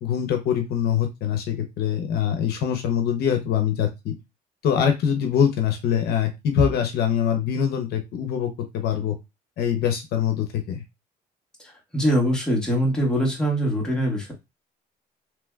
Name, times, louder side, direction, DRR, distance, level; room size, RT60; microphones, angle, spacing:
voice 1, 0.0-4.1 4.6-9.2 9.6-10.8, left 8 dB, 70° left, 5 dB, 0.7 m, -23 dB
voice 2, 11.6-14.3, equal, 5° left, -2 dB, 1.5 m, -23 dB
3.2 x 3.1 x 2.3 m, 0.23 s
cardioid pair, 110°, 17 cm